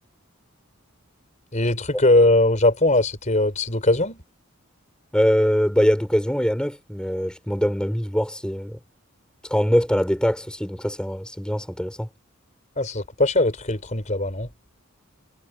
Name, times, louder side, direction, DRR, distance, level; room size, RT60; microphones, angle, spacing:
voice 1, 1.5-4.2 12.8-14.5, left 2 dB, 35° left, 4.3 m, -20 dB
voice 2, 5.1-8.8 9.5-12.1, equal, 5° left, 3.8 m, -22 dB
head